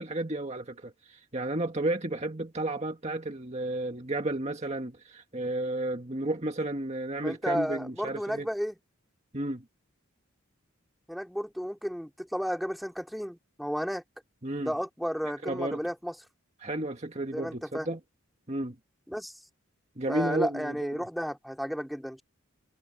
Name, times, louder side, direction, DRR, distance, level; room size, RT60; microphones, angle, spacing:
voice 1, 0.0-8.5 9.3-9.6 14.4-14.7 15.4-15.8 16.6-18.0 18.5-18.8 20.0-21.0, right 1 dB, 30° right, 1.8 m, -32 dB
voice 2, 7.2-8.8 11.1-14.0 14.6-16.1 17.3-17.9 19.1-19.3 20.1-22.2, equal, ahead, 3.5 m, -33 dB
head